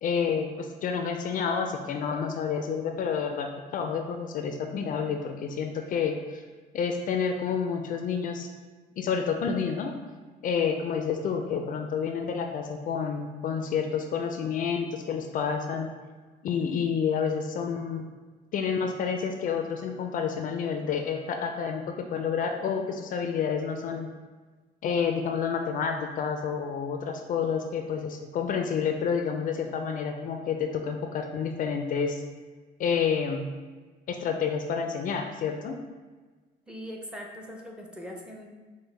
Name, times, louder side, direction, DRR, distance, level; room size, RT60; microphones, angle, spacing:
voice 1, 0.0-6.4 6.7-8.5 9.0-9.9 10.4-15.9 16.4-18.1 18.5-24.1 24.8-32.2 32.8-33.4 34.1-35.8, left 6 dB, 55° left, 4 dB, 0.4 m, -29 dB
voice 2, 36.7-38.5, equal, 5° right, 0 dB, 0.6 m, -41 dB
5.3 x 2.1 x 3.2 m, 1.3 s
cardioid pair, 110°, 17 cm